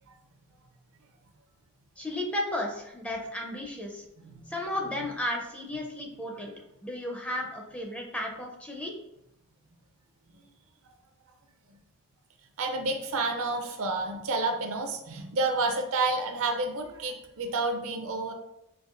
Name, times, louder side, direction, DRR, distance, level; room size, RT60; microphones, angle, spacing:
voice 1, 2.0-4.0 4.5-6.5 6.8-8.9, left 1 dB, 5° left, 0 dB, 0.4 m, -34 dB
voice 2, 12.6-18.3, right 3 dB, 65° right, 5 dB, 0.5 m, -30 dB
4.5 x 2.5 x 2.4 m, 0.86 s
head